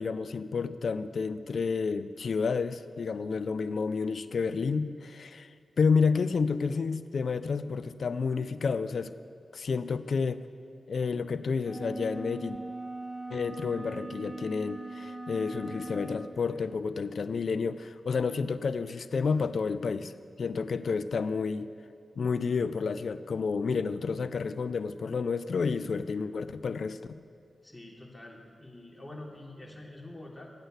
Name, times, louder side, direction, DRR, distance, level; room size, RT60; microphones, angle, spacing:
voice 1, 0.0-5.5 5.8-9.1 9.5-10.4 10.9-12.6 13.3-20.1 20.4-21.7 22.2-27.0, left 5 dB, 75° left, 13 dB, 0.5 m, -30 dB
sound 1, 11.6-16.2, right 2 dB, 5° right, 1.4 m, -40 dB
voice 2, 27.6-30.5, left 1 dB, 20° left, -2 dB, 3.1 m, -46 dB
13.0 x 9.0 x 8.1 m, 2.3 s
cardioid pair, 45°, 0 cm